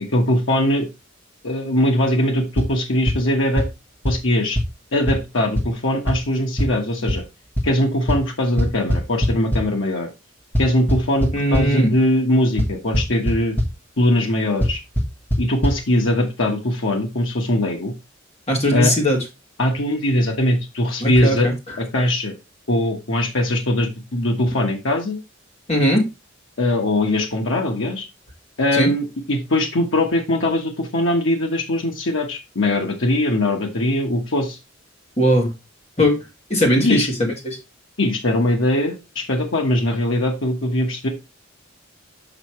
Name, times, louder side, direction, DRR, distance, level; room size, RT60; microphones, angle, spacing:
voice 1, 0.1-0.9 1.4-3.7 4.0-4.6 4.9-7.2 7.6-10.1 10.6-13.6 14.0-14.8 15.4-17.9 18.7-18.9 19.6-21.5 21.8-22.4 22.7-25.2 26.6-28.1 28.6-34.6 36.8-37.1 38.0-41.1, left 1 dB, 75° left, 2 dB, 1.2 m, -21 dB
sound 1, 2.6-2.7 3.1-3.2 3.6-3.7 4.0-4.1 4.6-4.7 5.1-5.2 5.6-5.7 6.1-6.2 6.6-6.7 7.1-7.2 7.6-7.7 8.1-8.2 8.6-9.6 10.5-11.6 12.6-12.7 12.9-13.3 13.6-13.7 14.6-14.7 15.0-15.1 15.3-15.4 15.6-15.7, equal, 10° left, 1.3 m, -18 dB
voice 2, 11.3-11.9 18.5-19.2 21.0-21.5 25.7-26.1 28.8-28.9 35.2-35.5 36.0-36.2 36.5-37.1 37.4-37.6, equal, 35° left, 0 dB, 2.1 m, -18 dB
6.6 x 5.6 x 3.1 m, 0.24 s
head